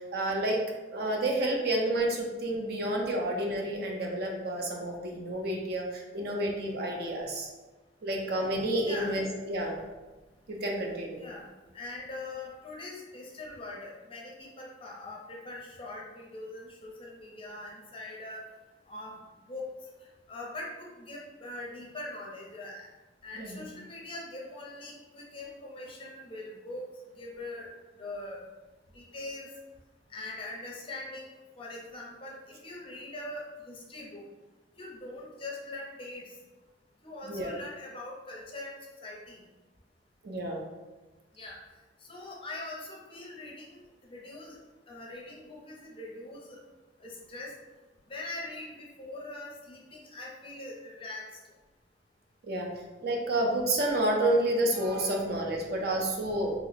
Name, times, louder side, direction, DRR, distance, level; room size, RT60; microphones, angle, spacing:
voice 1, 0.1-0.6 0.9-7.5 8.0-9.8 10.5-11.2 23.4-23.7 37.2-37.5 40.2-40.6 52.4-52.7 53.0-56.5, right 1 dB, 55° right, 0 dB, 0.5 m, -30 dB
voice 2, 8.8-9.2 11.2-11.5 11.7-18.4 18.9-19.1 19.5-19.7 20.3-22.9 23.2-26.8 27.2-27.7 28.0-28.4 28.9-29.5 30.1-34.2 34.8-36.2 37.0-39.4 41.4-41.6 42.1-43.8 44.1-44.6 44.9-46.6 47.0-47.5 48.1-51.2, left 2 dB, 30° left, -2 dB, 0.5 m, -42 dB
3.0 x 2.0 x 4.0 m, 1.2 s
head